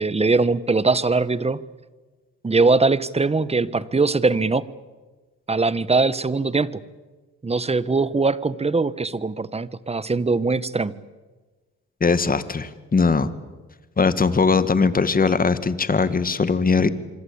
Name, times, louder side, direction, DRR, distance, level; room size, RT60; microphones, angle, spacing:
voice 1, 0.0-1.6 2.4-4.6 5.5-6.7 7.4-10.9, right 3 dB, 20° right, 17 dB, 1.2 m, -21 dB
voice 2, 12.0-13.3 14.0-16.9, left 4 dB, 30° left, 13 dB, 1.9 m, -20 dB
26.0 x 25.0 x 8.7 m, 1.3 s
cardioid pair, 90°, 30 cm